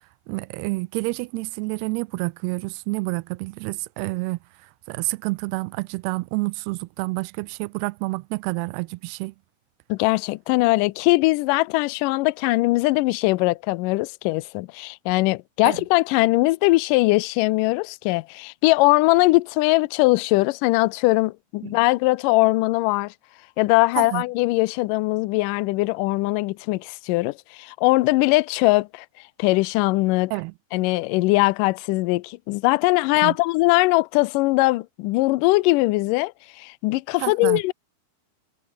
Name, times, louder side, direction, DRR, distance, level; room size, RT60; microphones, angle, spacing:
voice 1, 0.3-4.4 4.9-9.3 15.7-15.8 21.6-21.8 24.0-24.2 30.3-30.5 33.2-33.4 37.2-37.6, right 24 dB, 85° right, 2.5 m, -28 dB
voice 2, 9.9-23.1 23.6-29.1 29.4-30.3 30.7-36.3 36.6-37.7, left 21 dB, 90° left, 1.9 m, -21 dB
omnidirectional pair, 4.5 m